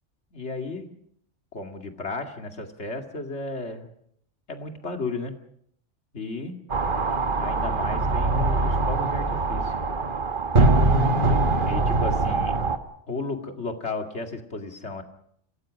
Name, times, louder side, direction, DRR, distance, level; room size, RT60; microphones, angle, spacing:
voice 1, 0.3-0.9 1.5-3.9 4.5-5.3 6.1-6.5 7.4-9.8 11.6-12.6 13.1-15.0, left 3 dB, 65° left, 5 dB, 2.6 m, -34 dB
sound 1, 6.7-12.8, right 3 dB, 45° right, 1.5 m, -22 dB
26.0 x 18.0 x 6.4 m, 0.68 s
omnidirectional pair, 1.2 m